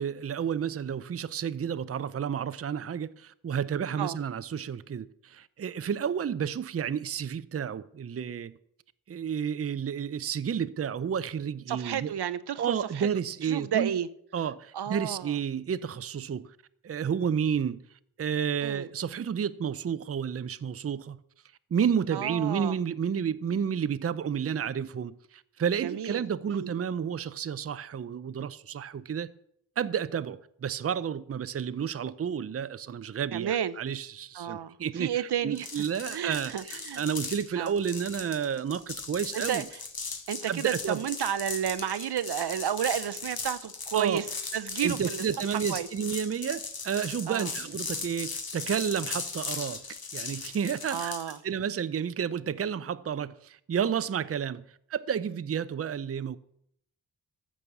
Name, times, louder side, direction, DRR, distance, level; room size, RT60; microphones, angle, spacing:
voice 1, 0.0-8.6 9.1-12.1 12.6-13.9 14.3-16.6 16.8-17.9 18.2-21.2 21.7-29.3 29.8-39.6 40.5-41.0 43.9-44.2 44.8-49.8 50.1-51.1 51.4-54.6 54.9-56.4, right 7 dB, 40° right, 0.5 m, -31 dB
voice 2, 11.7-13.1 13.4-14.1 14.7-15.4 18.6-18.9 22.1-22.8 25.8-26.2 26.5-26.7 33.3-33.7 34.3-35.7 36.1-37.0 37.6-37.7 39.3-39.8 40.3-44.3 44.5-45.2 45.5-45.9 47.3-47.5 50.9-51.4, right 9 dB, 90° right, 0.7 m, -31 dB
sound 1, 35.6-51.4, left 4 dB, 65° left, 2.1 m, -38 dB
14.0 x 6.3 x 6.9 m
wide cardioid pair, 125°, 39 cm